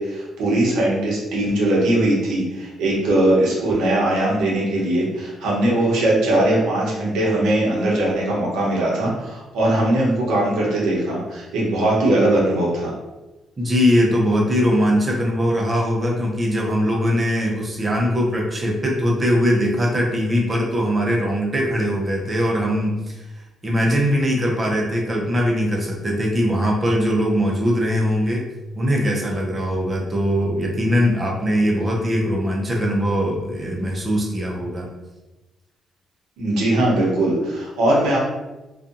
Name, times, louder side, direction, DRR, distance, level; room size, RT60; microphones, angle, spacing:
voice 1, 0.0-12.9 36.4-38.2, right 1 dB, 85° right, -4 dB, 0.9 m, -20 dB
voice 2, 13.6-23.2 23.6-28.4 28.7-34.9, equal, 30° right, -1 dB, 0.7 m, -21 dB
2.6 x 2.3 x 2.5 m, 1.1 s
cardioid pair, 90°, 0 cm